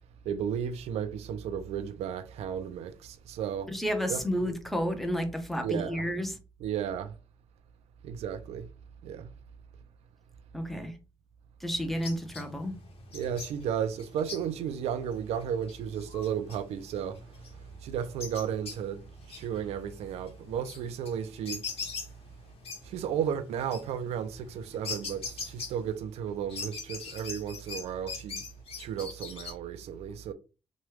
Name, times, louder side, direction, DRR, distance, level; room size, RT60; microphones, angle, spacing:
voice 1, 0.2-3.7 4.1-4.2 5.6-6.1 6.6-7.1 8.0-8.7 9.0-9.3 13.1-17.2 17.8-19.0 19.3-21.6 22.8-28.4 28.8-30.3, right 8 dB, 85° right, 0.4 m, -34 dB
voice 2, 3.7-6.4 10.5-11.0 11.6-12.8, equal, ahead, 0.8 m, -31 dB
sound 1, 11.7-26.2 26.5-29.5, left 4 dB, 65° left, 1.0 m, -43 dB
3.0 x 2.3 x 3.1 m
cardioid pair, 65°, 11 cm